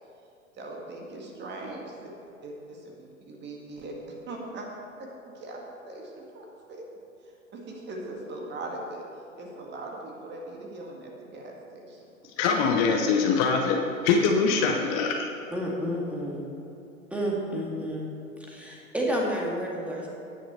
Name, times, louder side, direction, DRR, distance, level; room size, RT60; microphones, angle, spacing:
voice 1, 0.5-1.9 2.4-4.0 4.3-4.7 5.0-5.1 5.4-6.9 7.5-9.0 9.3-12.0, right 2 dB, 25° right, 0 dB, 2.0 m, -40 dB
voice 2, 12.4-15.3, left 5 dB, 35° left, 2 dB, 1.1 m, -23 dB
voice 3, 15.5-16.4 17.1-18.1 18.5-20.1, equal, 5° right, -3 dB, 2.1 m, -30 dB
17.5 x 6.2 x 4.4 m, 2.8 s
figure-of-eight pair, 105°, 41 cm